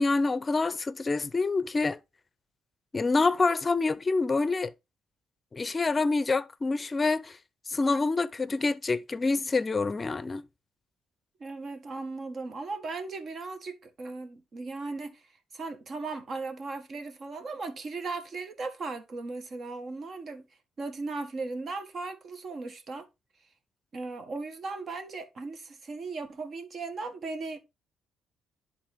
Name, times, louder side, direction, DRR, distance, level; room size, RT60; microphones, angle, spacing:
voice 1, 0.0-2.0 2.9-4.7 5.5-7.4 7.7-10.4, left 3 dB, 30° left, 0.6 m, -26 dB
voice 2, 11.4-15.2 15.5-20.5 20.8-23.1 23.9-27.6, right 3 dB, 50° right, 1.6 m, -37 dB
10.5 x 4.1 x 3.6 m
cardioid pair, 90°, 0 cm